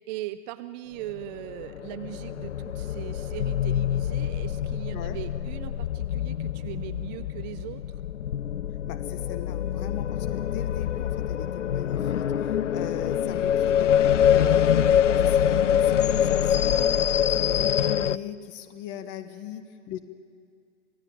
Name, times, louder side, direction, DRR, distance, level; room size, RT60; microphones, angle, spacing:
voice 1, 0.1-8.0, right 15 dB, 35° right, 13 dB, 0.7 m, -39 dB
sound 1, 1.3-18.2, left 9 dB, 80° left, 0.7 m, -25 dB
voice 2, 8.9-17.0 17.3-20.0, left 11 dB, 30° left, 11 dB, 1.2 m, -38 dB
27.0 x 17.0 x 9.0 m, 2.2 s
hypercardioid pair, 115°, 36 cm